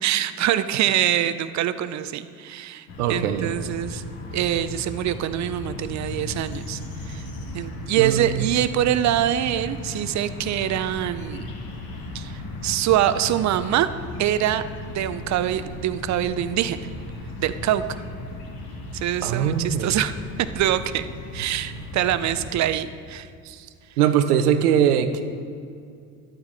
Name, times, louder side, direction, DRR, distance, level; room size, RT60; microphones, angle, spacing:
voice 1, 0.0-4.0 4.3-6.8 7.1-7.2 7.5-11.5 12.1-13.9 14.2-14.6 14.9-16.8 17.4-18.0 18.9-20.1 20.5-21.1 21.3-23.3, right 12 dB, 40° right, 13 dB, 0.6 m, -24 dB
sound 1, 2.9-22.6, left 2 dB, 50° left, 1.9 m, -36 dB
voice 2, 3.0-3.5 8.0-8.5 19.2-19.9 23.4-23.7 24.0-25.2, right 9 dB, 80° right, 10 dB, 0.8 m, -21 dB
12.0 x 8.7 x 4.0 m, 2.4 s
hypercardioid pair, 70°, 45 cm